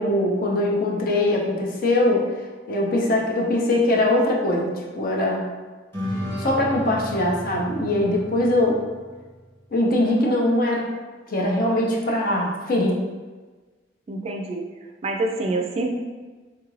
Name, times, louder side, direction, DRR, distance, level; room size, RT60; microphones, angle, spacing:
voice 1, 0.0-2.2 2.7-5.5 6.4-8.8 9.7-10.9 11.3-13.0, left 1 dB, 50° left, -1 dB, 0.5 m, -22 dB
sound 1, 5.9-9.5, equal, 10° left, 0.9 m, -33 dB
voice 2, 14.1-14.7 15.0-15.9, right 2 dB, 35° right, 1 dB, 0.3 m, -26 dB
3.5 x 2.4 x 3.1 m, 1.3 s
head